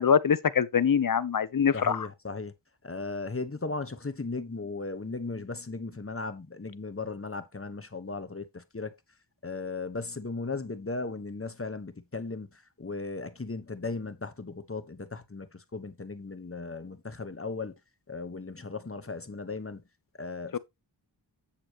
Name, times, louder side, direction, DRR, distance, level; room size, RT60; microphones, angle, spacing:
voice 1, 0.0-2.1 20.5-20.6, left 7 dB, 50° left, 0.8 m, -24 dB
voice 2, 1.7-2.5 2.8-9.0 9.4-17.7 18.1-19.8 20.2-20.6, left 3 dB, 30° left, 1.2 m, -37 dB
8.6 x 7.5 x 2.9 m
wide cardioid pair, 55°, 44 cm